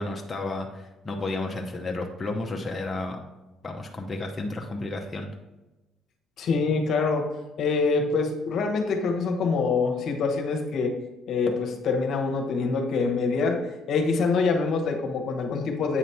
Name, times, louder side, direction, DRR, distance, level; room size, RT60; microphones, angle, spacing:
voice 1, 0.0-3.2 3.6-5.3, left 2 dB, 25° left, 1 dB, 0.8 m, -32 dB
voice 2, 6.4-7.3 7.6-10.9 11.3-16.0, left 4 dB, 65° left, 3 dB, 1.1 m, -25 dB
8.5 x 3.0 x 5.6 m, 1.1 s
cardioid pair, 85°, 0 cm